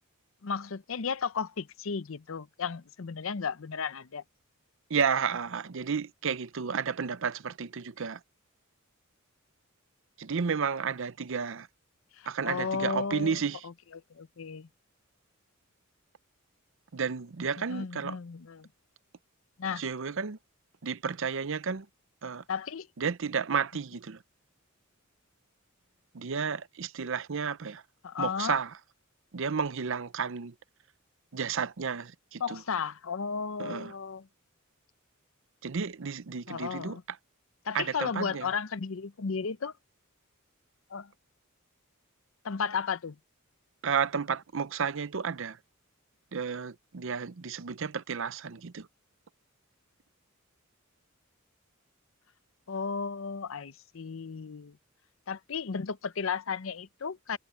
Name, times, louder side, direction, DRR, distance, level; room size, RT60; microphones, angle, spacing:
voice 1, 0.4-4.2 12.2-14.7 17.7-18.7 19.6-19.8 22.5-22.9 28.0-28.6 32.4-34.3 36.5-37.0 37.6-39.7 40.9-41.1 42.4-43.2 52.7-54.8 55.3-57.4, left 5 dB, 70° left, 0.6 m, -34 dB
voice 2, 4.9-8.2 10.2-11.7 12.3-13.7 16.9-18.2 19.8-20.4 20.8-21.9 22.2-22.4 23.0-24.2 26.1-27.8 28.2-28.7 29.3-30.5 31.3-32.6 33.6-33.9 35.6-37.0 37.7-38.5 43.8-45.6 46.3-48.9, right 6 dB, 65° right, 0.6 m, -32 dB
head